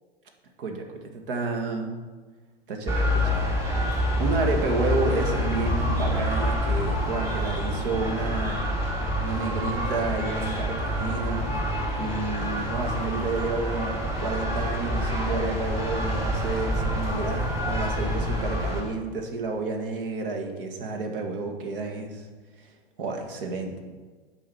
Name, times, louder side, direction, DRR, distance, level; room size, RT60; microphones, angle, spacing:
voice 1, 0.6-2.0 2.7-3.5 4.2-8.7 9.2-11.4 12.0-22.3 22.6-22.7 23.0-23.8, right 3 dB, 65° right, 3 dB, 1.7 m, -30 dB
sound 1, 2.9-18.8, equal, 10° right, 2.5 m, -27 dB
8.5 x 5.0 x 6.0 m, 1.4 s
hypercardioid pair, 105°, 29 cm